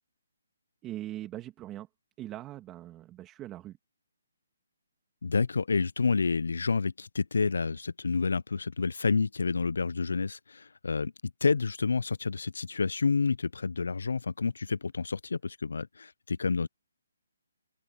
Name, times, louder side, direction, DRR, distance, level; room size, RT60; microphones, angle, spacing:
voice 1, 0.8-1.9 2.2-3.8, right 14 dB, 15° right, 2.2 m, -41 dB
voice 2, 5.2-11.1 11.4-16.7, left 4 dB, 80° left, 0.4 m, -29 dB
hypercardioid pair, 160°, 0 cm